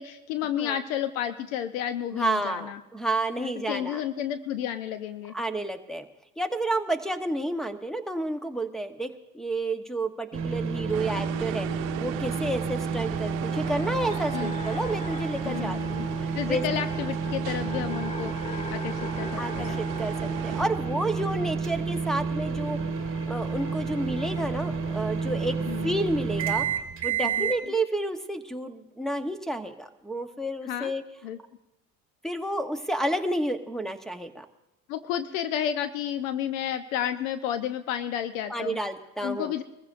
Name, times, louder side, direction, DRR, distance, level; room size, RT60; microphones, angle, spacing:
voice 1, 0.0-2.8 3.4-5.3 14.3-14.6 15.4-16.1 16.3-19.8 25.7-26.0 27.2-27.7 30.7-30.9 31.2-31.4 34.9-38.8 39.2-39.6, left 10 dB, 75° left, 10 dB, 0.9 m, -31 dB
voice 2, 2.1-4.0 5.3-6.0 6.4-16.6 19.4-22.8 23.3-25.5 25.8-31.0 32.2-34.5 38.5-39.5, right 1 dB, ahead, 9 dB, 1.0 m, -30 dB
sound 1, 10.3-27.6, right 5 dB, 30° right, 1.6 m, -30 dB
sound 2, 10.9-20.7, right 16 dB, 70° right, 0.8 m, -38 dB
sound 3, 13.0-26.4, left 4 dB, 15° left, 0.6 m, -44 dB
23.0 x 15.0 x 2.6 m, 0.95 s
hypercardioid pair, 90°, 40 cm